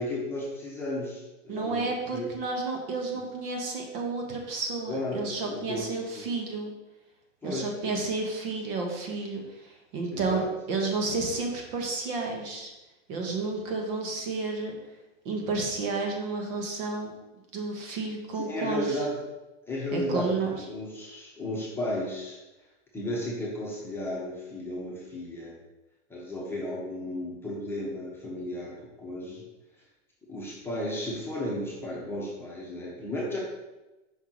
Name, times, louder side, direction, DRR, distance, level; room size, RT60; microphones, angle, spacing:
voice 1, 0.0-2.3 3.1-3.2 4.9-6.3 7.4-7.9 10.1-10.5 18.3-19.2 19.7-22.4 22.9-25.6 26.1-29.4 30.3-33.4, left 1 dB, 5° left, -5 dB, 1.2 m, -34 dB
voice 2, 1.5-6.7 7.4-10.4 10.7-12.7 13.1-14.8 15.2-17.1 17.5-19.0 19.9-20.6, right 3 dB, 50° right, 1 dB, 1.3 m, -31 dB
5.6 x 5.6 x 3.1 m, 1.0 s
hypercardioid pair, 135°, 38 cm